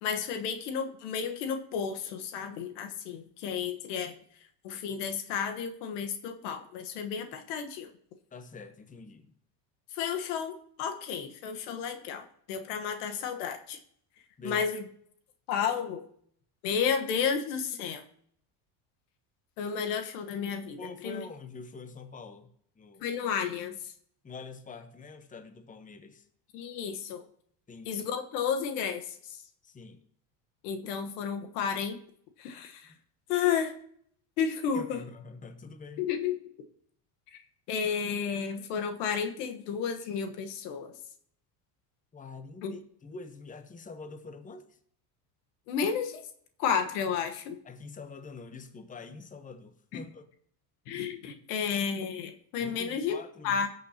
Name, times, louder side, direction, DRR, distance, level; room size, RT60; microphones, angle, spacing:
voice 1, 0.0-4.1 4.6-7.9 9.9-13.8 14.4-14.8 15.5-16.0 16.6-18.0 19.6-21.2 23.0-23.9 26.5-27.2 27.8-29.4 30.6-32.0 32.4-32.9 33.3-33.8 34.4-35.0 36.0-36.4 37.3-37.4 37.7-41.0 42.6-42.7 45.7-46.2 46.6-47.6 49.9-50.0 50.9-53.2 53.4-53.7, left 7 dB, 85° left, 1.3 m, -32 dB
voice 2, 8.3-9.3 14.4-14.7 20.8-23.1 24.2-26.3 27.7-28.1 29.6-30.0 34.7-36.0 42.1-44.8 47.6-50.3 52.6-53.7, left 4 dB, 15° left, 0.9 m, -45 dB
16.5 x 6.5 x 2.8 m
supercardioid pair, 110°, 46 cm